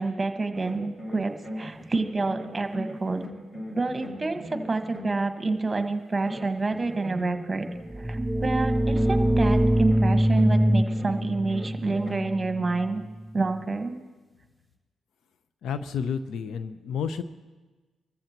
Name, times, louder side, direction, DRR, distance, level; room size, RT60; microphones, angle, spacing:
voice 1, 0.0-3.2 3.7-7.7 8.0-13.0 13.3-13.9, right 3 dB, 25° right, 7 dB, 1.4 m, -28 dB
sound 1, 0.5-5.7 6.3-7.9 9.0-12.8, left 1 dB, 20° left, 2.8 m, -39 dB
sound 2, 7.9-13.4, equal, 10° right, 0.4 m, -24 dB
voice 2, 15.6-17.2, left 7 dB, 75° left, 12 dB, 0.7 m, -30 dB
25.0 x 14.0 x 3.0 m, 1.2 s
supercardioid pair, 50°, 0 cm